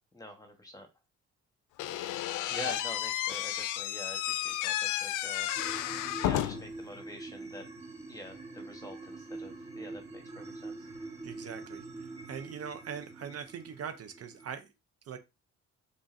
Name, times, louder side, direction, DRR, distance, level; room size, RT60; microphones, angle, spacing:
voice 1, 0.1-0.9 2.5-5.5 6.2-7.6 8.1-10.9, left 1 dB, 10° left, 1.2 m, -46 dB
Slam / Squeak, 1.8-6.8, left 13 dB, 85° left, 0.5 m, -32 dB
sound 1, 5.6-14.5, right 3 dB, 20° right, 1.2 m, -45 dB
voice 2, 11.2-14.7 15.0-15.2, right 7 dB, 50° right, 0.6 m, -42 dB
3.8 x 3.6 x 2.6 m
cardioid pair, 90°, 30 cm